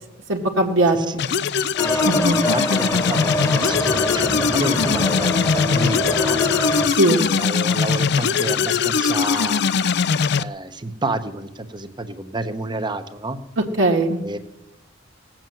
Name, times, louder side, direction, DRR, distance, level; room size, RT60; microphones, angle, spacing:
voice 1, 0.3-1.2 2.0-2.4 7.0-7.2 13.8-14.2, right 1 dB, 75° right, -1 dB, 1.5 m, -19 dB
voice 2, 0.9-1.3 1.8-6.4 7.1-9.7 10.3-13.4 14.2-14.4, right 2 dB, 25° right, 9 dB, 1.0 m, -30 dB
sound 1, 1.2-10.4, left 6 dB, 60° left, 0.5 m, -21 dB
sound 2, 1.8-6.9, left 1 dB, 15° left, 1.3 m, -24 dB
18.0 x 7.4 x 7.7 m, 0.96 s
head